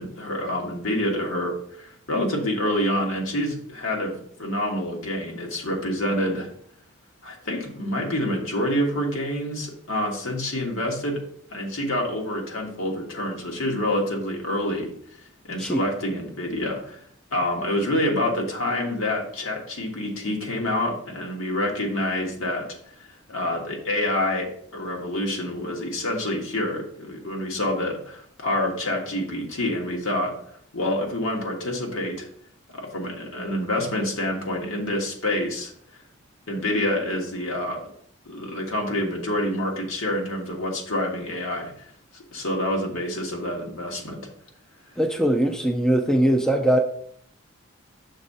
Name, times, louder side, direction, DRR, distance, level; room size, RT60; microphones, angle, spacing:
voice 1, 0.0-6.5 7.2-11.2 11.5-17.0 17.3-22.7 22.9-30.3 30.7-32.3 32.7-35.7 36.5-37.9 38.2-41.7 42.1-44.2, left 1 dB, 80° left, 0 dB, 1.6 m, -27 dB
voice 2, 45.0-46.8, right 1 dB, 5° left, 4 dB, 0.4 m, -21 dB
6.3 x 3.7 x 5.4 m, 0.64 s
head